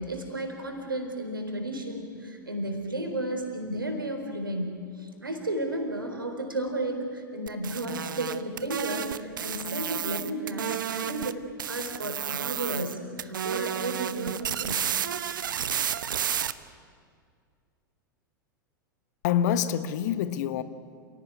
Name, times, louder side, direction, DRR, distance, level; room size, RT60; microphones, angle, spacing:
voice 1, 0.0-14.9, right 1 dB, 85° right, 4.2 m, -33 dB
sound 1, 7.5-11.3 11.6-12.9 13.2-16.5, right 9 dB, 70° right, 0.9 m, -31 dB
voice 2, 19.2-20.6, left 9 dB, 55° left, 1.2 m, -26 dB
28.0 x 17.5 x 9.5 m
figure-of-eight pair, 95°, 11 cm